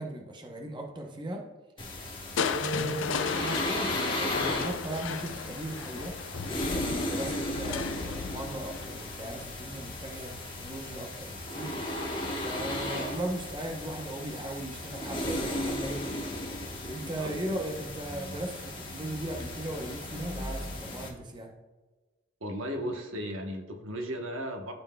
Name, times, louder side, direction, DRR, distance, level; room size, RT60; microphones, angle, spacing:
voice 1, 0.0-1.4 2.4-6.1 6.7-11.7 12.4-16.1 16.8-21.5, right 1 dB, 20° right, 2 dB, 0.7 m, -37 dB
sound 1, 1.8-21.1, left 1 dB, 25° left, 1.1 m, -35 dB
Crushing, 2.4-10.3 11.9-12.4 12.9-13.0, left 6 dB, 65° left, 0.4 m, -36 dB
voice 2, 22.4-24.7, equal, 75° right, 4 dB, 1.0 m, -36 dB
12.0 x 4.4 x 2.2 m, 1.3 s
head